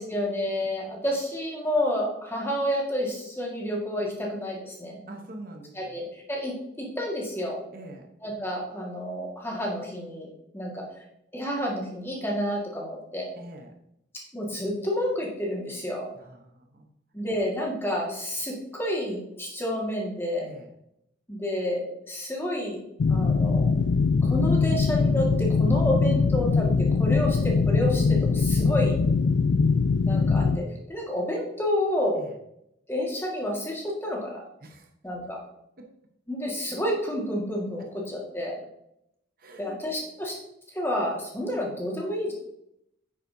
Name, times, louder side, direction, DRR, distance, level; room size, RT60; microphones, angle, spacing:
voice 1, 0.0-5.0 5.7-7.6 8.2-10.3 10.5-10.8 11.3-13.3 14.3-16.1 17.1-20.5 21.3-22.8 23.1-23.7 24.2-29.0 30.0-32.2 32.9-34.4 35.0-35.4 36.3-38.6 39.6-40.4 40.7-42.3, equal, 10° left, -2 dB, 1.8 m, -30 dB
voice 2, 5.1-6.0 7.7-8.1 13.4-13.7 16.2-16.9 20.4-20.7 32.2-32.3 34.6-34.9 35.8-35.9 39.4-39.8, right 1 dB, 50° right, 2 dB, 1.0 m, -44 dB
sound 1, 23.0-30.6, left 4 dB, 70° left, 0.4 m, -22 dB
9.2 x 7.4 x 2.7 m, 0.78 s
head